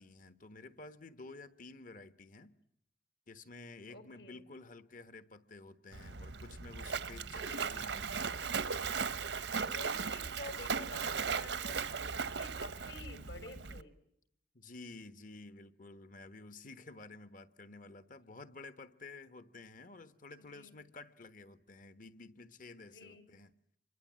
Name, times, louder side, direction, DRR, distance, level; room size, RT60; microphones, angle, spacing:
voice 1, 0.0-2.5 3.3-8.5 14.5-23.5, left 3 dB, 50° left, 1.4 m, -52 dB
voice 2, 3.9-4.4 7.4-7.6 9.5-13.9 20.4-20.7 22.9-23.2, left 2 dB, 70° left, 4.4 m, -50 dB
Splash splatter, 5.9-13.8, right 5 dB, 85° right, 1.0 m, -37 dB
27.0 x 23.0 x 7.6 m
head